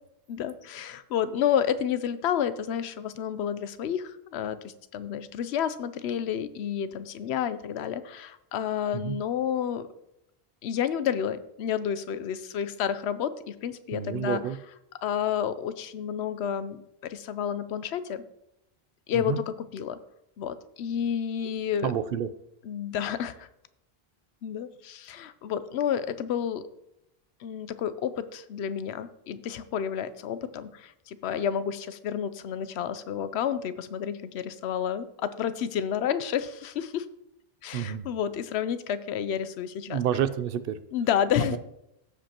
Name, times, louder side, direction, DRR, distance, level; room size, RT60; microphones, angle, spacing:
voice 1, 0.3-9.9 10.6-14.4 15.0-18.2 19.1-20.0 20.4-21.9 22.6-23.5 24.4-26.6 27.4-37.1 37.6-40.0 40.9-41.6, left 8 dB, 85° left, 13 dB, 0.9 m, -30 dB
voice 2, 13.9-14.6 19.1-19.4 21.8-22.3 37.7-38.0 39.9-40.8 41.5-41.6, right 9 dB, 65° right, 13 dB, 0.7 m, -29 dB
15.0 x 5.2 x 2.9 m, 0.83 s
omnidirectional pair, 1.1 m